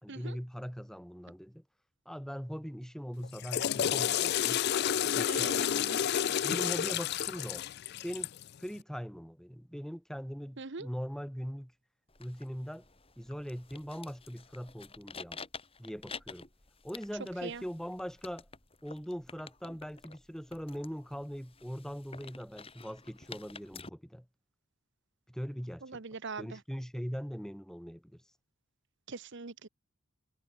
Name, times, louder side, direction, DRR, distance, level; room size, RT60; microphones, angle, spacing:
voice 1, 0.0-1.6 2.1-4.6 5.0-5.7 6.4-7.6 8.0-8.3 8.6-11.7 12.2-12.9 13.2-15.4 15.8-16.5 16.8-18.5 18.8-24.3 25.3-26.0 26.4-28.2, equal, ahead, 5.4 m, -41 dB
Water / Toilet flush, 3.2-8.5, left 10 dB, 45° left, 0.3 m, -30 dB
voice 2, 5.3-6.0 10.6-10.9 17.4-17.6 25.9-26.4 29.1-29.7, right 4 dB, 55° right, 0.9 m, -41 dB
sound 1, 12.1-23.9, left 5 dB, 25° left, 4.3 m, -50 dB
head